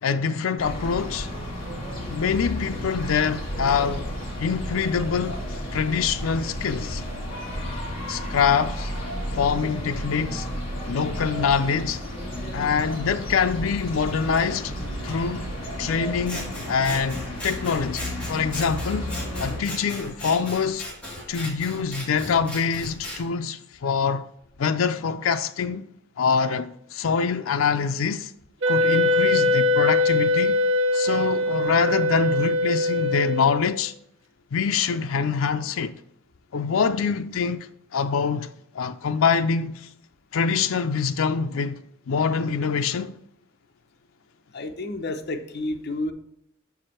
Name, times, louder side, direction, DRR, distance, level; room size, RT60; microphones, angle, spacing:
voice 1, 0.0-1.3 2.1-4.1 4.4-7.0 8.1-8.9 9.3-10.5 10.9-12.0 12.5-14.7 15.0-15.5 15.8-18.0 18.3-19.1 19.4-20.9 21.3-24.2 24.6-25.9 26.2-28.3 28.7-30.6 30.9-33.9 34.5-36.0 36.5-37.7 37.9-39.9 40.3-41.8 42.1-43.2, left 6 dB, 80° left, 0.4 m, -25 dB
sound 1, 0.6-19.6, equal, 30° left, 2.7 m, -32 dB
Scissors, 16.2-23.2, left 1 dB, 5° left, 2.2 m, -37 dB
Wind instrument woodwind instrument, 28.6-33.8, left 2 dB, 65° right, 0.8 m, -22 dB
voice 2, 44.5-46.1, left 2 dB, 55° left, 0.8 m, -30 dB
7.0 x 4.8 x 4.4 m
head